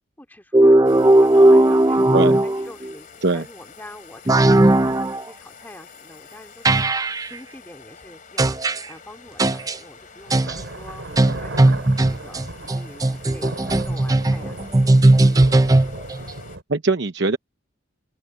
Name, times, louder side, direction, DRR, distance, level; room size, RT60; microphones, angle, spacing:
voice 1, 0.2-2.1 2.4-15.7 16.1-16.2, left 1 dB, 10° left, 2.5 m, -45 dB
sound 1, 0.5-2.9 4.3-5.2 6.7-7.3 8.4-8.8 9.4-9.8 10.3-10.6 11.2-16.2, right 1 dB, 20° right, 0.5 m, -16 dB
sound 2, 0.8-16.6, left 5 dB, 45° left, 3.1 m, -46 dB
sound 3, 9.3-9.4 10.2-16.6, right 2 dB, 80° right, 3.2 m, -36 dB
voice 2, 16.7-17.4, right 3 dB, 60° right, 1.0 m, -21 dB
open air
head